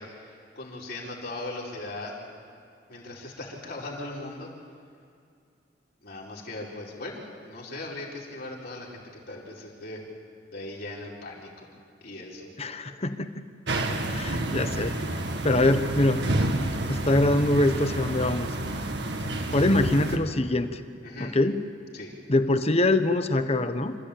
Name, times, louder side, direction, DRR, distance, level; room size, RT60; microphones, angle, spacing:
voice 1, 0.0-2.2 2.9-4.5 6.0-10.0 10.5-11.7 12.0-12.5 21.0-21.3 21.9-22.1, left 2 dB, 55° left, -3 dB, 4.6 m, -39 dB
voice 2, 12.6-13.5 14.1-15.0 15.4-16.2 16.9-18.5 19.5-20.8 21.2-21.6 22.3-23.9, left 2 dB, 35° left, 10 dB, 1.0 m, -24 dB
sound 1, 13.7-20.2, right 1 dB, 65° right, 1.9 m, -29 dB
27.5 x 14.5 x 8.6 m, 2.4 s
head